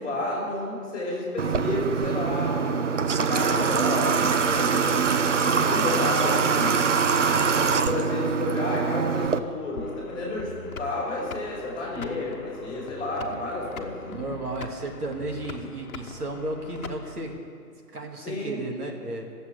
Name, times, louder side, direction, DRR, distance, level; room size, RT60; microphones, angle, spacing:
voice 1, 0.0-2.9 3.1-5.0 5.4-6.8 7.2-10.5 10.8-14.2 18.2-18.6, left 2 dB, 10° left, -8 dB, 4.6 m, -31 dB
Water / Water tap faucet, 1.4-9.4, right 6 dB, 50° right, 0.6 m, -23 dB
sound 1, 9.8-17.4, left 4 dB, 60° left, 1.3 m, -42 dB
voice 2, 14.1-17.4 17.9-19.3, right 2 dB, 65° right, 1 dB, 2.3 m, -33 dB
14.5 x 8.0 x 9.6 m, 2.4 s
hypercardioid pair, 160°, 49 cm